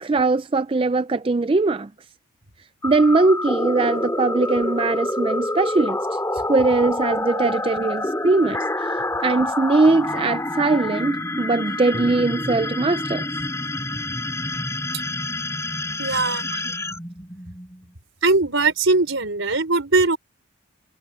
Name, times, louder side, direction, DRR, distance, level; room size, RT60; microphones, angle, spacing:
voice 1, 0.0-1.9 2.8-6.0 6.5-13.2 16.5-16.6, right 3 dB, 25° right, 0.4 m, -21 dB
sound 1, 2.8-17.9, left 1 dB, 15° left, 3.5 m, -27 dB
voice 2, 16.0-16.5 18.2-20.2, right 3 dB, 75° right, 4.0 m, -20 dB
head